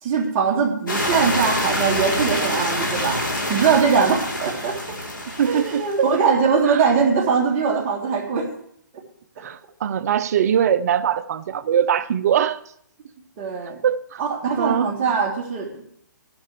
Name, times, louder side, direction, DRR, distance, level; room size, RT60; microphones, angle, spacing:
voice 1, 0.0-3.2 3.5-5.0 5.4-8.5 13.4-13.8 14.2-15.8, right 5 dB, 35° right, 0 dB, 2.9 m, -21 dB
sound 1, 0.9-6.2, left 1 dB, 90° left, 3.3 m, -26 dB
voice 2, 5.4-6.1 6.7-6.8 9.4-12.6 13.8-14.2 14.6-14.9, right 9 dB, 55° right, 15 dB, 0.6 m, -22 dB
15.0 x 10.5 x 3.2 m, 0.67 s
hypercardioid pair, 135°, 11 cm